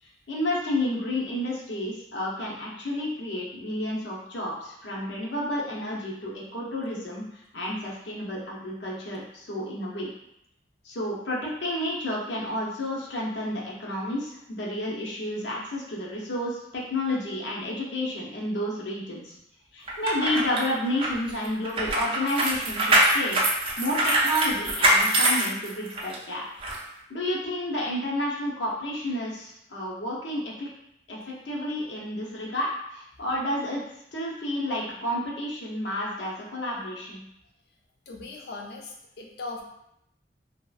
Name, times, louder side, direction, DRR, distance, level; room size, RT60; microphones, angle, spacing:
voice 1, 0.0-10.1 10.8-19.4 19.7-26.4 27.1-30.7 31.1-33.8 34.1-37.2, left 1 dB, 90° left, -4 dB, 0.7 m, -31 dB
sound 1, 19.9-26.2 26.6-26.8, right 1 dB, 30° right, 0.4 m, -24 dB
voice 2, 38.1-39.6, left 3 dB, 60° left, 1 dB, 0.4 m, -39 dB
2.8 x 2.3 x 2.3 m, 0.77 s
head